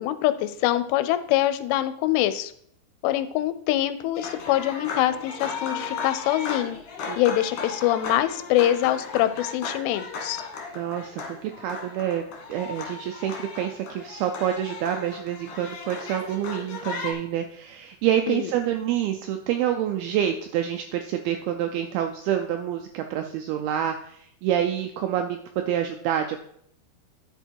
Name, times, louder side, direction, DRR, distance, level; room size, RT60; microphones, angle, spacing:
voice 1, 0.0-2.5 3.0-6.8 7.2-10.4 18.3-18.5, left 13 dB, 85° left, 12 dB, 2.6 m, -24 dB
sound 1, 4.1-17.1, left 5 dB, 60° left, 2.6 m, -36 dB
voice 2, 10.8-25.4 25.7-26.4, right 10 dB, 85° right, 5 dB, 2.2 m, -27 dB
10.5 x 4.5 x 4.5 m, 0.66 s
omnidirectional pair, 5.0 m